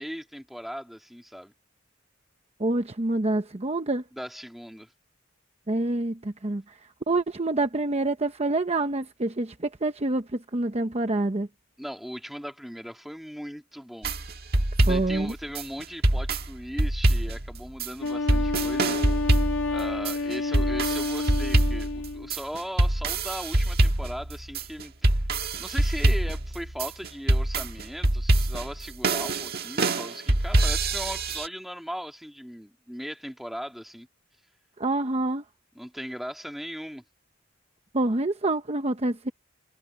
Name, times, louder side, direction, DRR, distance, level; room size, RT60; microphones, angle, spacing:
voice 1, 0.0-1.5 4.1-4.9 11.8-14.1 14.6-19.3 19.7-25.2 25.6-34.1 35.7-37.0, equal, ahead, 2.2 m, -38 dB
voice 2, 2.6-4.0 5.7-6.6 7.1-10.2 10.5-11.5 14.9-15.3 34.8-35.4 37.9-39.3, right 2 dB, 30° right, 0.9 m, -26 dB
sound 1, 14.0-31.5, right 1 dB, 55° right, 1.7 m, -25 dB
Wind instrument woodwind instrument, 18.0-22.3, left 3 dB, 90° left, 1.8 m, -29 dB
head